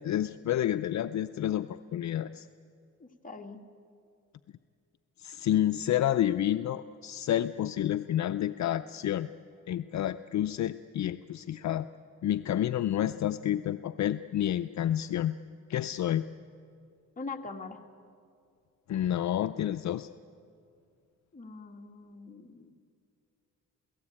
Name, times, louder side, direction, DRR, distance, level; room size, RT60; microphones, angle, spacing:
voice 1, 0.0-2.5 5.2-9.3 9.7-11.9 12.2-15.4 15.7-16.2 18.9-20.1, left 11 dB, 60° left, 11 dB, 0.5 m, -29 dB
voice 2, 3.0-3.6 17.2-17.8 21.3-22.7, left 4 dB, 25° left, 2 dB, 1.8 m, -42 dB
29.0 x 17.5 x 8.7 m, 2.4 s
cardioid pair, 115°, 32 cm